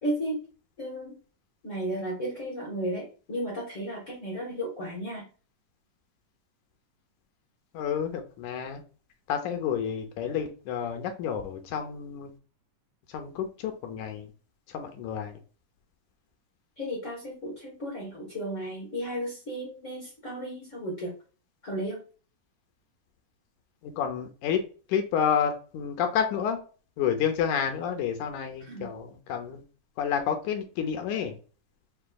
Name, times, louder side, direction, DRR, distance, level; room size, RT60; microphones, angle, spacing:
voice 1, 0.0-0.4 0.8-1.1 1.6-5.3 16.8-21.1 21.6-22.0 28.6-28.9, right 1 dB, 55° left, -3 dB, 0.8 m, -34 dB
voice 2, 7.7-8.8 9.3-12.3 13.1-14.3 14.7-15.4 23.8-24.6 24.9-26.6 27.0-29.6 30.0-31.4, left 8 dB, 75° left, 5 dB, 1.9 m, -30 dB
6.8 x 2.7 x 2.3 m, 0.37 s
omnidirectional pair, 3.8 m